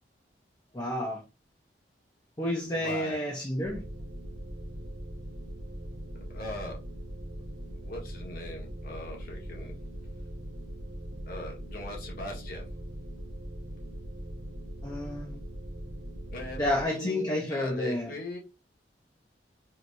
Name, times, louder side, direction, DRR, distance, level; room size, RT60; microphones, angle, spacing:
voice 1, 0.7-1.2 2.4-3.8 14.8-15.4 16.6-18.1, left 1 dB, 20° left, 0.7 m, -30 dB
voice 2, 2.7-3.2 6.3-6.8 7.8-9.7 11.3-12.6 16.3-18.4, left 1 dB, 55° left, 1.5 m, -39 dB
sound 1, 3.6-16.9, right 1 dB, 70° right, 0.7 m, -41 dB
4.5 x 3.2 x 2.6 m
head